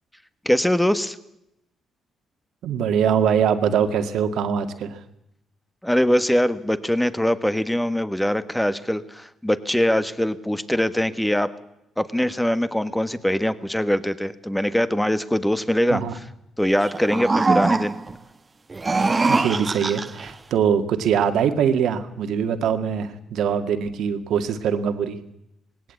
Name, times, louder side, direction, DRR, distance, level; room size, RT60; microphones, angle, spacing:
voice 1, 0.4-1.2 5.8-11.5 12.0-16.3 16.6-18.0, equal, 5° left, 13 dB, 1.4 m, -22 dB
voice 2, 2.6-5.0 15.9-16.1 19.3-25.2, right 7 dB, 75° right, 8 dB, 2.0 m, -22 dB
sound 1, 16.8-18.2 18.7-20.3, right 3 dB, 25° right, 1.3 m, -22 dB
19.0 x 17.0 x 8.4 m, 0.82 s
cardioid pair, 90°, 0 cm